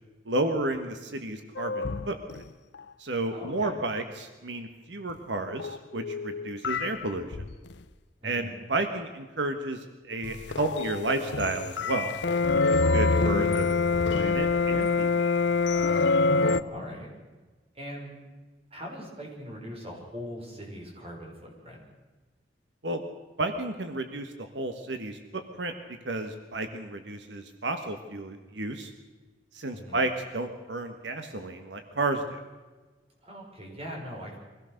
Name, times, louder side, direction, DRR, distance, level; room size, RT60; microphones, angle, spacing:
voice 1, 0.2-2.4 3.0-7.4 8.2-12.2 12.5-13.7 14.1-15.1 22.8-23.0 23.4-25.7 26.0-28.9 29.5-32.4, right 2 dB, 90° right, 7 dB, 1.5 m, -32 dB
sound 1, 1.6-2.4 2.7-2.8 5.1-5.2 5.6-7.7 10.2-16.6, left 4 dB, 80° left, 0.7 m, -26 dB
voice 2, 3.3-3.8 8.2-8.5 16.2-17.1 17.7-18.2 18.7-21.8 29.7-30.0 33.2-34.4, equal, 35° right, -1 dB, 5.8 m, -41 dB
24.0 x 16.5 x 6.6 m, 1.3 s
head